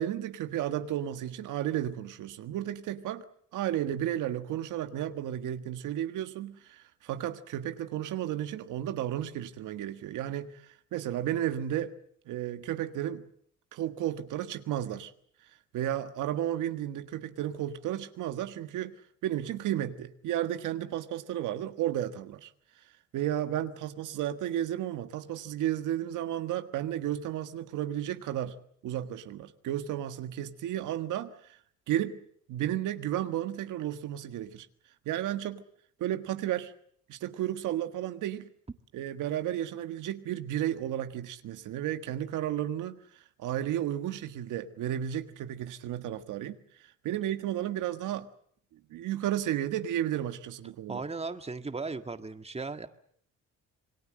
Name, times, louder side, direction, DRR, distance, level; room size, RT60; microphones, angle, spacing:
voice 1, 0.0-3.2 3.5-11.9 12.3-13.3 13.7-15.1 15.7-18.9 19.2-22.5 23.1-28.6 28.8-31.6 31.9-32.2 32.5-34.7 35.0-35.6 36.0-36.7 37.1-38.5 38.9-43.0 43.4-46.6 47.0-48.3 48.9-51.0, right 11 dB, 90° right, 1.6 m, -33 dB
voice 2, 50.9-52.9, right 4 dB, 20° right, 1.8 m, -36 dB
27.5 x 21.0 x 7.6 m
cardioid pair, 90°, 30 cm